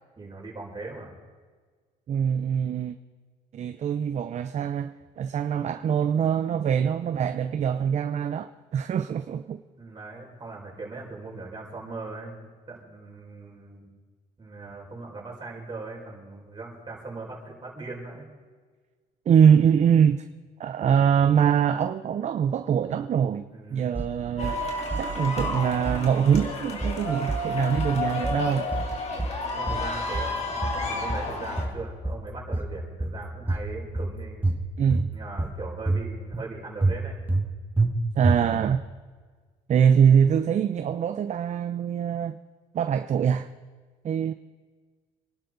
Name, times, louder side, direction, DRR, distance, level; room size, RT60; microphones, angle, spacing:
voice 1, 0.2-1.1 9.8-13.9 14.4-18.3 23.5-23.9 29.6-34.5 35.1-37.2, right 3 dB, 25° right, 5.5 m, -39 dB
voice 2, 2.1-2.9 3.5-9.6 19.3-20.3 20.6-23.4 23.7-24.6 25.0-28.7 34.8-35.1 38.2-38.8 39.7-42.4 42.7-43.5 44.0-44.3, right 8 dB, 45° right, 0.6 m, -23 dB
sound 1, 23.9-24.6 24.9-25.5 25.9-26.5 26.8-27.5 27.8-28.4 28.7-29.4 29.7-30.4 30.6-31.3 31.6-32.3 32.5-33.2 33.5-34.1 34.4-35.1 35.4-36.0 36.3-36.4 36.8-37.5 37.8-37.9 38.2-38.7, right 2 dB, 10° right, 1.6 m, -27 dB
sound 2, 24.4-31.6, left 2 dB, 40° left, 3.1 m, -31 dB
26.5 x 11.5 x 4.0 m
cardioid pair, 110°, 17 cm